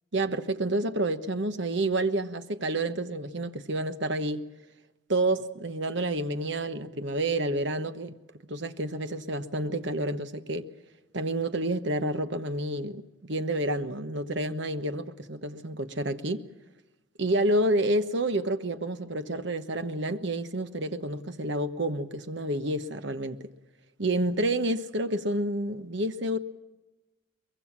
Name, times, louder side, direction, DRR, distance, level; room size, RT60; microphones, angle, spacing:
voice 1, 0.1-4.5 5.1-8.1 8.5-10.7 11.1-16.5 17.2-23.4 24.0-26.4, right 1 dB, 55° right, 1.2 m, -29 dB
23.0 x 22.0 x 7.4 m
head